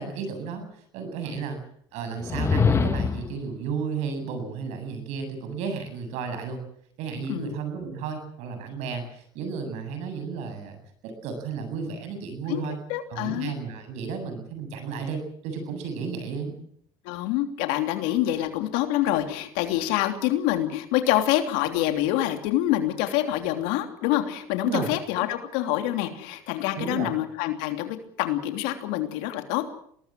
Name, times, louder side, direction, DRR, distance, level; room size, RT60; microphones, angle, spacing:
voice 1, 0.0-1.6 1.9-6.6 7.0-10.8 11.0-12.8 13.1-16.6 24.7-24.9 26.8-27.1, right 5 dB, 70° right, 8 dB, 7.9 m, -33 dB
sound 1, 2.2-3.4, left 5 dB, 20° left, 1.7 m, -23 dB
voice 2, 12.9-13.5 17.0-29.7, left 13 dB, 75° left, 6 dB, 3.2 m, -26 dB
22.5 x 19.5 x 7.7 m, 0.66 s
supercardioid pair, 115°, 12 cm